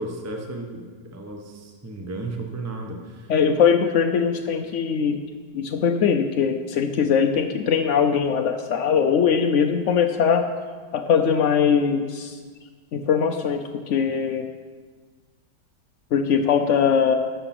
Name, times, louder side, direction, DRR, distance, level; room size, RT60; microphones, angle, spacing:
voice 1, 0.0-3.3, right 2 dB, 15° right, 2 dB, 0.7 m, -34 dB
voice 2, 3.3-5.2 5.5-10.5 10.9-12.4 12.9-14.5 16.1-17.2, left 7 dB, 85° left, 6 dB, 0.6 m, -21 dB
12.5 x 6.9 x 6.0 m, 1.5 s
omnidirectional pair, 2.0 m